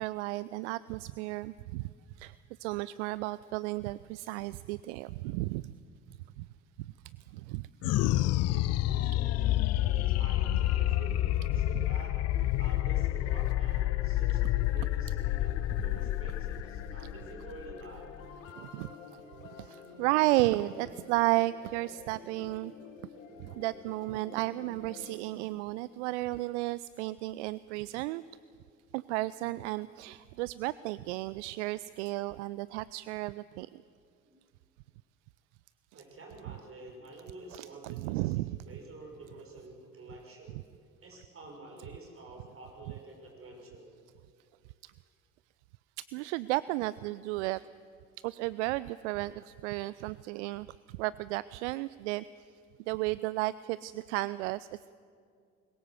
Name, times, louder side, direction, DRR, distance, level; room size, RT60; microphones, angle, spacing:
voice 1, 0.0-1.9 2.2-2.3 2.6-5.7 6.4-6.5 7.5-7.7 18.6-18.9 19.6-22.7 23.4-28.2 28.9-33.7 37.5-38.6 44.8-44.9 46.1-47.6 48.2-50.7 51.0-52.2 52.9-54.7, right 19 dB, 60° right, 18 dB, 0.5 m, -33 dB
sound 1, 7.8-18.5, left 15 dB, 40° left, 0.5 m, -29 dB
voice 2, 7.9-12.2 12.6-18.1 34.2-34.3 35.9-40.6 41.0-43.9, right 2 dB, 35° right, 1 dB, 5.9 m, -48 dB
sound 2, 9.2-25.2, left 5 dB, 75° left, 2.1 m, -50 dB
21.5 x 19.0 x 7.9 m, 2.3 s
figure-of-eight pair, 55°, 40 cm